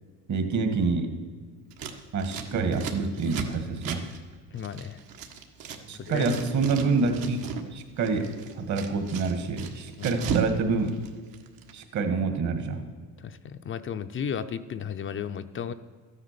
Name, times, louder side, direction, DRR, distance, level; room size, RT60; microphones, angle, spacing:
voice 1, 0.3-1.1 2.1-4.0 5.9-7.4 7.7-10.9 11.7-12.8, right 4 dB, 50° right, 6 dB, 1.9 m, -27 dB
Scissors, 1.7-5.8 6.1-7.7 8.0-10.5 10.8-11.7, right 6 dB, 65° right, 1.7 m, -36 dB
voice 2, 4.5-5.0 5.9-6.3 10.0-10.2 13.2-15.7, left 7 dB, 35° left, 9 dB, 0.6 m, -34 dB
13.5 x 9.9 x 6.8 m, 1.5 s
cardioid pair, 120°, 36 cm